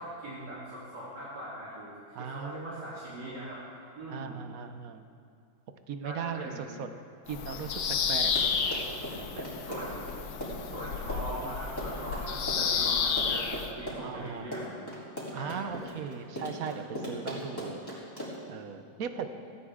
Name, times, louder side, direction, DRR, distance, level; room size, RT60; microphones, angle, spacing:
voice 1, 0.0-3.6 4.0-4.4 6.0-6.7 9.5-10.1 10.6-14.7 15.3-15.9, right 1 dB, 80° right, -10 dB, 3.7 m, -41 dB
voice 2, 2.1-2.9 4.1-5.0 5.9-7.0 7.3-8.3 8.7-8.8 9.4-9.5 14.0-14.5 15.3-17.8 18.2-19.3, right 7 dB, 60° right, 8 dB, 1.2 m, -38 dB
Bird vocalization bird call bird song, 7.3-13.7, left 6 dB, 70° left, 1.3 m, -31 dB
Run, 8.3-18.5, equal, 15° left, 3.3 m, -38 dB
17.0 x 15.0 x 3.7 m, 2.3 s
omnidirectional pair, 1.8 m